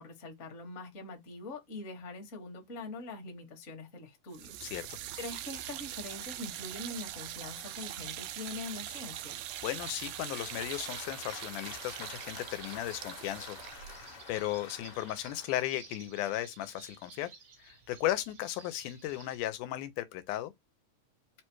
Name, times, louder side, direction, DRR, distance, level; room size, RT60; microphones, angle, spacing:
voice 1, 0.0-4.6 5.2-9.4, left 2 dB, 40° left, 1.1 m, -43 dB
sound 1, 4.3-15.4, right 12 dB, 90° right, 1.5 m, -43 dB
sound 2, 5.0-19.4, right 5 dB, 55° right, 1.0 m, -56 dB
voice 2, 9.6-13.6 14.3-17.3 17.6-20.5, left 14 dB, 85° left, 2.1 m, -35 dB
Applause, 9.8-15.8, left 7 dB, 60° left, 1.7 m, -50 dB
4.8 x 2.2 x 4.5 m
omnidirectional pair, 3.6 m